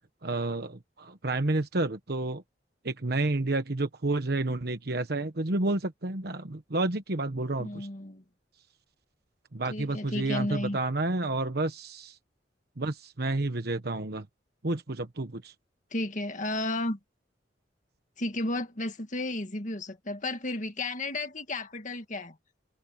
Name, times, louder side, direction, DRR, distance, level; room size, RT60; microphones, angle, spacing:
voice 1, 0.2-2.4 2.8-7.9 9.5-12.2 12.8-14.3 14.6-15.5, right 2 dB, 60° right, 1.2 m, -30 dB
voice 2, 7.6-8.2 9.7-10.8 15.9-17.0 18.2-22.4, left 2 dB, 45° left, 1.9 m, -33 dB
head